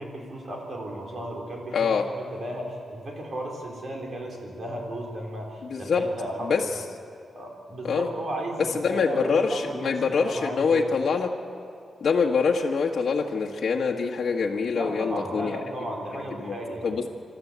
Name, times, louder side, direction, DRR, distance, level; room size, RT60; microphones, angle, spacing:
voice 1, 0.0-6.5 7.3-10.9 14.7-17.0, right 1 dB, 50° right, 1 dB, 4.2 m, -35 dB
voice 2, 1.7-2.1 5.7-6.0 6.4-6.6 7.8-8.1 8.7-11.3 12.0-15.6 16.1-16.5 16.8-17.0, left 5 dB, 60° left, -1 dB, 1.5 m, -25 dB
27.0 x 13.0 x 8.2 m, 2.5 s
wide cardioid pair, 120°, 0 cm